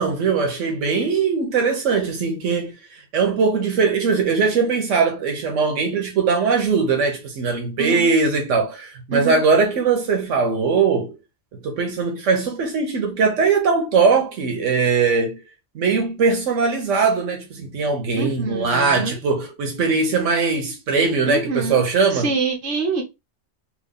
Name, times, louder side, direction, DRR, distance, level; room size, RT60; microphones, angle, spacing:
voice 1, 0.0-2.8 3.1-11.2 11.5-15.4 15.7-22.3, right 4 dB, 85° right, 1.1 m, -20 dB
voice 2, 7.8-8.1 9.1-9.4 18.2-19.2 21.2-21.8 22.1-23.0, right 4 dB, 65° right, 1.2 m, -25 dB
3.0 x 2.3 x 3.6 m
omnidirectional pair, 1.2 m